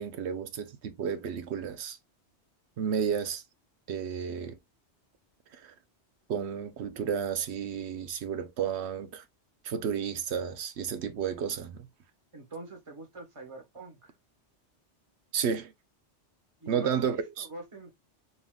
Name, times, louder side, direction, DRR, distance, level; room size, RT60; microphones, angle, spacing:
voice 1, 0.0-2.0 2.8-3.4 3.9-4.6 5.5-5.7 6.3-9.2 9.6-11.9 15.3-15.7 16.7-17.5, right 7 dB, 70° right, 0.9 m, -32 dB
voice 2, 12.3-14.1 16.6-17.9, right 2 dB, 30° right, 1.3 m, -44 dB
4.4 x 3.6 x 2.2 m
omnidirectional pair, 1.2 m